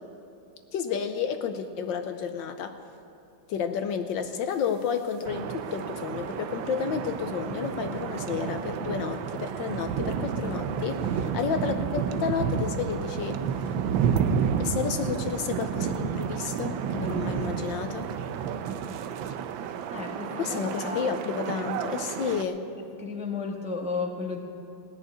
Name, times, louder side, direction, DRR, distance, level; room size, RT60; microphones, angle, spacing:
voice 1, 0.7-2.8 3.5-13.4 14.6-18.1 20.4-22.6, left 7 dB, 70° left, 7 dB, 1.3 m, -31 dB
sound 1, 5.3-22.4, right 7 dB, 75° right, 1.3 m, -30 dB
voice 2, 19.9-21.1 23.0-24.4, left 4 dB, 5° right, 1 dB, 0.8 m, -33 dB
19.0 x 6.7 x 9.9 m, 2.9 s
omnidirectional pair, 2.3 m